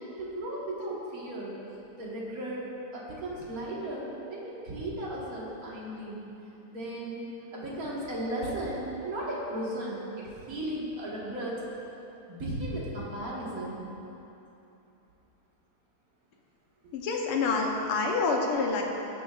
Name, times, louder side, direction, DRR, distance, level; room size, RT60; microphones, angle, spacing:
voice 1, 0.0-1.6 2.0-2.6 2.9-6.2 6.7-7.2 7.5-11.6 12.3-13.8 16.8-16.9, right 1 dB, 45° right, -6 dB, 2.0 m, -35 dB
voice 2, 16.9-18.8, left 4 dB, 85° left, 0 dB, 1.9 m, -27 dB
16.5 x 7.1 x 2.5 m, 2.9 s
omnidirectional pair, 2.4 m